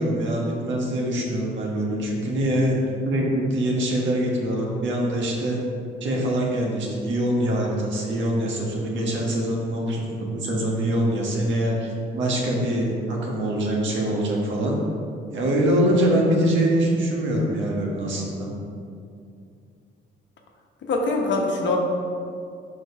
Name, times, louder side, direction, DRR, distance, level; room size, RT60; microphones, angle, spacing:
voice 1, 0.0-2.8 3.0-5.6 6.0-14.8 15.3-18.5, right 1 dB, 70° right, -2 dB, 1.4 m, -24 dB
voice 2, 20.8-21.8, left 3 dB, 65° left, 1 dB, 1.0 m, -23 dB
4.6 x 4.6 x 5.4 m, 2.4 s
cardioid pair, 90°, 20 cm